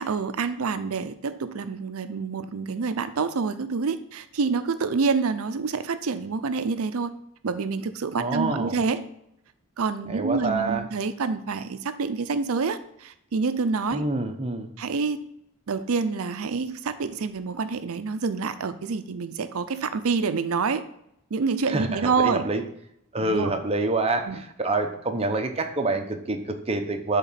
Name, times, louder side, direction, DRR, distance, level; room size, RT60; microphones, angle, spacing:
voice 1, 0.0-7.1 7.4-9.0 9.8-14.1 14.8-15.3 15.7-20.8 21.3-22.4 23.2-23.5 24.3-24.4, right 4 dB, 70° right, 11 dB, 0.5 m, -27 dB
voice 2, 8.2-8.8 10.1-10.9 13.9-14.7 21.7-22.6 23.1-27.2, right 2 dB, 25° right, 5 dB, 0.8 m, -27 dB
8.1 x 3.7 x 5.7 m, 0.76 s
head